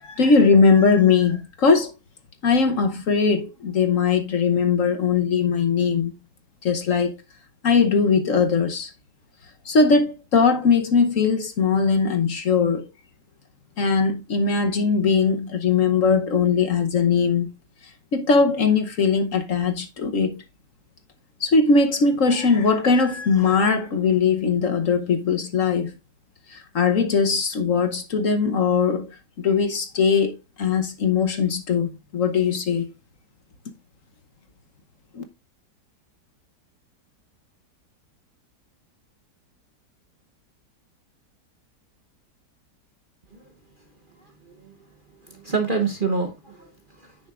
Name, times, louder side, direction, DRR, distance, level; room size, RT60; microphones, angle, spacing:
voice 1, 0.0-1.9 2.4-6.1 6.6-7.2 7.6-8.9 9.6-12.9 13.8-17.5 18.1-20.4 21.4-25.9 26.5-32.9 35.1-35.2, left 5 dB, 55° left, 1.2 m, -20 dB
voice 2, 44.2-44.7 45.2-47.2, right 4 dB, 35° right, 0.9 m, -28 dB
9.4 x 6.5 x 2.4 m
omnidirectional pair, 1.9 m